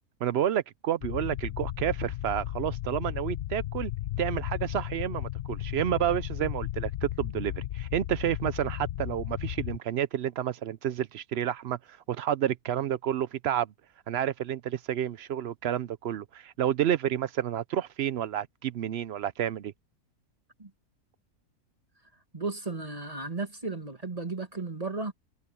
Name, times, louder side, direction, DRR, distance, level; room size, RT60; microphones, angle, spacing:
voice 1, 0.2-3.9 4.2-13.7 14.1-19.7, right 10 dB, 65° right, 0.6 m, -30 dB
sound 1, 1.0-9.8, left 13 dB, 65° left, 0.7 m, -35 dB
voice 2, 22.3-25.1, right 3 dB, 25° right, 2.1 m, -34 dB
omnidirectional pair, 1.7 m